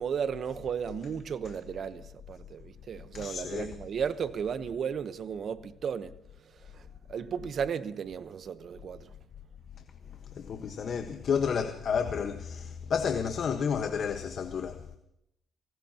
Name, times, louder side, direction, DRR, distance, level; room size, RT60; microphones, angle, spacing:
voice 1, 0.0-6.1 7.1-9.1, right 7 dB, 55° right, 1.0 m, -34 dB
voice 2, 3.1-3.8 10.3-14.8, left 6 dB, 60° left, 1.3 m, -31 dB
26.5 x 18.0 x 3.0 m
cardioid pair, 90°, 0 cm